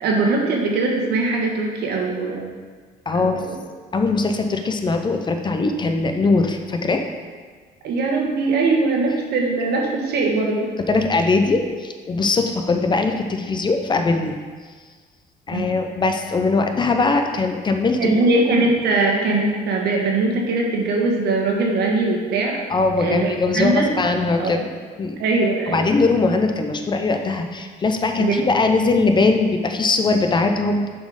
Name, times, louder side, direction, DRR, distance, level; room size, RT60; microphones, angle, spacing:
voice 1, 0.0-2.5 3.1-3.6 7.8-10.7 15.5-15.7 18.0-22.6 23.0-24.0 24.4-24.6 25.2-25.8 28.2-28.4, right 3 dB, 75° right, 0 dB, 1.3 m, -21 dB
voice 2, 3.1-3.4 3.9-7.1 10.9-14.4 15.5-18.1 22.7-24.6 25.0-25.2 25.7-30.9, left 3 dB, 25° left, 5 dB, 0.6 m, -20 dB
7.0 x 4.3 x 4.9 m, 1.5 s
cardioid pair, 110°, 17 cm